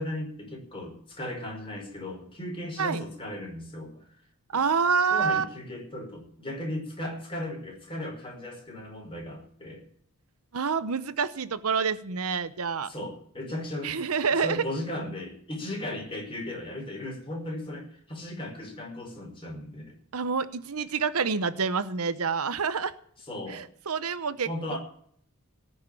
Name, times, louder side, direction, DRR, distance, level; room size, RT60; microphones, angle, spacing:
voice 1, 0.0-4.1 4.5-4.6 5.1-9.8 12.8-14.0 14.3-20.0 23.3-23.6 24.4-24.8, left 1 dB, 25° left, 0 dB, 5.0 m, -36 dB
voice 2, 4.5-5.4 10.5-12.9 13.8-14.6 20.1-22.9 23.5-24.8, right 5 dB, 75° right, 14 dB, 0.8 m, -27 dB
19.0 x 6.6 x 8.6 m, 0.62 s
head